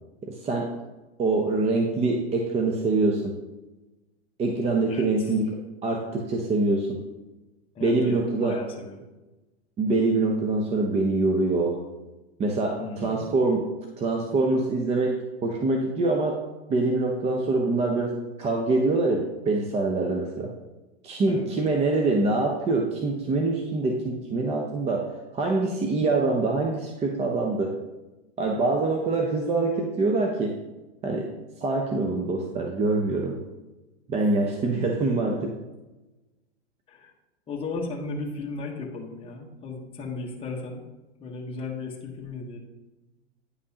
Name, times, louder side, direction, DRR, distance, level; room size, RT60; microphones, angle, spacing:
voice 1, 0.2-0.7 1.2-3.4 4.4-7.0 7.8-8.6 9.8-11.8 12.4-13.7 14.0-16.4 16.7-20.5 21.0-27.8 28.4-30.6 31.0-31.3 31.6-33.4 34.1-35.6, right 3 dB, 20° right, 2 dB, 0.6 m, -25 dB
voice 2, 4.9-5.3 7.7-9.0 12.8-13.3 21.3-21.5 36.9-37.1 37.5-40.8 41.2-42.6, left 3 dB, 15° left, -2 dB, 1.1 m, -35 dB
9.6 x 5.2 x 2.8 m, 1.1 s
hypercardioid pair, 120°, 33 cm